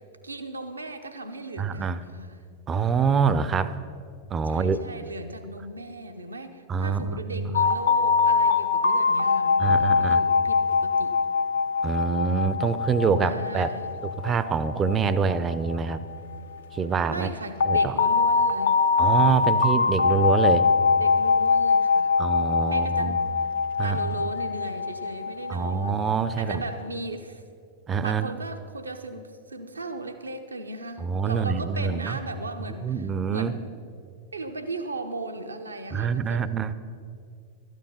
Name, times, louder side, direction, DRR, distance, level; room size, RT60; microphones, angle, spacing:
voice 1, 0.0-2.4 4.4-11.2 13.2-14.0 17.1-18.8 21.0-22.2 22.7-23.5 23.8-26.1 26.4-27.4 28.0-33.7 34.3-36.5, right 2 dB, 80° right, 7 dB, 0.8 m, -37 dB
voice 2, 1.6-2.0 2.7-3.8 4.3-4.8 6.7-7.5 9.6-10.2 11.8-13.7 14.2-16.0 16.7-17.3 17.7-17.9 19.0-20.7 22.2-23.2 23.8-24.1 25.5-26.6 27.9-28.3 31.0-32.2 32.8-33.5 35.9-36.7, right 6 dB, 25° right, 14 dB, 0.5 m, -25 dB
sound 1, 7.5-16.4 17.6-26.8, left 5 dB, 65° left, 0.6 m, -23 dB
13.0 x 9.3 x 5.4 m, 2.3 s
figure-of-eight pair, 90°, 0 cm